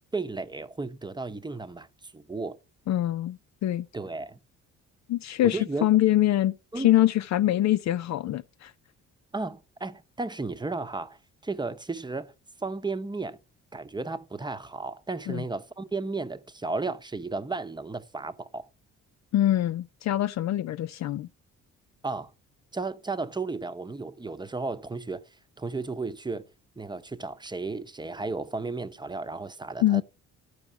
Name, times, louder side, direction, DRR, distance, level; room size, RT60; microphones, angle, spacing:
voice 1, 0.1-2.6 3.9-4.4 5.4-5.9 6.7-6.9 9.3-12.3 12.6-13.4 13.7-18.7 22.0-22.3 22.7-25.3 25.6-26.4 26.8-30.0, right 3 dB, 15° right, 0.8 m, -34 dB
voice 2, 2.9-3.9 5.1-8.7 15.3-15.4 19.3-21.3 29.8-30.0, left 13 dB, 65° left, 0.5 m, -24 dB
12.5 x 4.8 x 6.2 m
cardioid pair, 90°, 30 cm